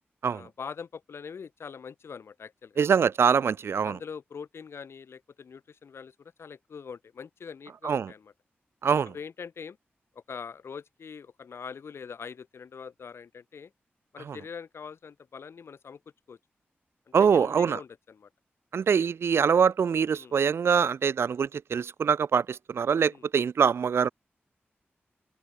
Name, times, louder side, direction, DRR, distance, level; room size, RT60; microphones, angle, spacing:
voice 1, 0.3-2.8 3.8-8.3 9.1-9.8 10.3-13.7 14.1-16.0 16.3-16.4 17.2-18.3 20.1-20.4 23.1-23.2, left 6 dB, 85° left, 6.9 m, -43 dB
voice 2, 2.8-4.0 7.8-8.1 8.8-9.1 14.3-14.4 17.1-17.8 18.7-24.1, right 6 dB, 80° right, 0.6 m, -24 dB
open air
wide cardioid pair, 80°, 4 cm